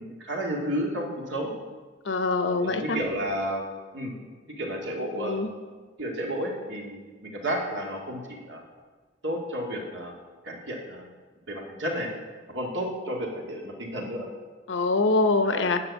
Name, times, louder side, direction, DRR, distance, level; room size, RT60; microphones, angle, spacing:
voice 1, 0.0-1.5 2.6-3.6 3.9-4.1 4.6-5.4 6.0-8.6 9.2-10.1 10.4-11.1 11.5-12.1 12.5-14.3 15.5-15.6, equal, 75° right, -1 dB, 2.1 m, -32 dB
voice 2, 2.1-3.0 5.2-5.5 14.7-15.8, left 3 dB, 80° left, 8 dB, 0.8 m, -24 dB
9.5 x 5.9 x 8.2 m, 1.4 s
head